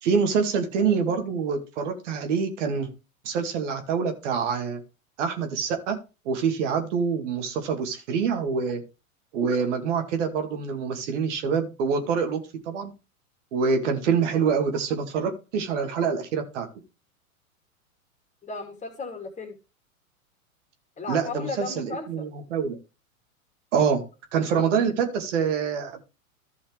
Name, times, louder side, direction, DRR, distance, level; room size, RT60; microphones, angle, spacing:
voice 1, 0.0-2.9 3.2-4.8 5.2-6.0 6.3-8.8 9.3-12.9 13.5-16.7 21.1-22.8 23.7-24.0 24.3-26.0, right 6 dB, 55° right, 5 dB, 2.3 m, -26 dB
voice 2, 18.4-19.6 21.0-22.3, left 4 dB, 15° left, 5 dB, 2.7 m, -35 dB
14.5 x 5.6 x 3.4 m, 0.29 s
figure-of-eight pair, 100°, 42 cm